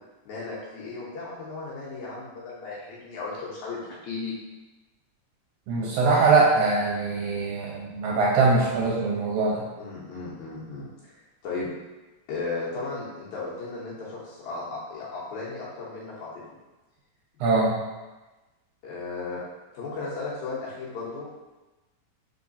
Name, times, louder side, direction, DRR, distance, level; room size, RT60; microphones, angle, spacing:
voice 1, 0.3-4.3 9.8-10.9 11.4-11.7 12.3-16.3 17.3-17.4 18.8-19.4 19.7-21.3, left 3 dB, 70° left, -7 dB, 2.1 m, -35 dB
voice 2, 5.7-9.6 17.4-17.8, right 3 dB, 75° right, -4 dB, 1.9 m, -22 dB
4.7 x 3.7 x 2.6 m, 1.1 s
omnidirectional pair, 3.9 m